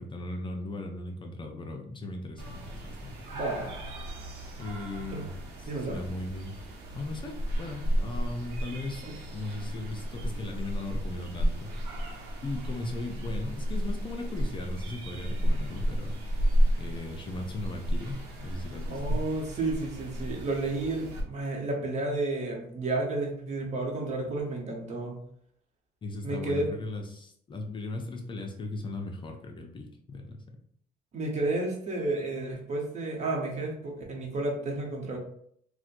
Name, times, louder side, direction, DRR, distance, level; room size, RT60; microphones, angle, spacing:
voice 1, 0.0-3.1 4.6-5.3 5.6-6.5 6.9-9.0 9.3-12.1 12.4-16.5 16.8-19.2 26.0-30.6, left 2 dB, 30° left, 3 dB, 0.5 m, -38 dB
sound 1, 2.4-21.2, equal, 80° right, 0.9 m, -32 dB
voice 2, 3.3-3.8 5.1-5.2 5.6-6.0 9.0-9.1 18.9-25.2 26.2-26.7 31.1-35.2, right 2 dB, 45° right, 0 dB, 0.9 m, -31 dB
4.2 x 2.1 x 2.5 m, 0.65 s
cardioid pair, 110°, 17 cm